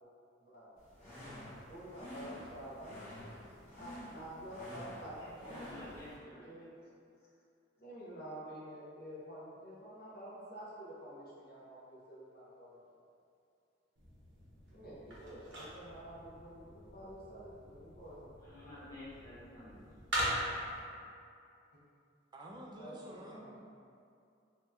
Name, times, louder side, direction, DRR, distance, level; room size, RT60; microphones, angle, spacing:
sound 1, 0.8-6.1, equal, 40° left, 1.1 m, -50 dB
voice 1, 1.6-3.2 3.8-5.8 6.5-6.7 7.8-12.8 14.7-18.3 18.6-18.7 22.8-23.4, equal, 55° left, -8 dB, 0.6 m, -49 dB
voice 2, 5.1-6.6 18.4-19.8, left 1 dB, 20° left, -11 dB, 0.9 m, -51 dB
sound 2, 14.0-20.8, equal, 75° right, 0.9 m, -42 dB
voice 3, 22.3-23.6, right 1 dB, 25° right, -2 dB, 0.3 m, -49 dB
2.8 x 2.1 x 3.4 m, 2.5 s
head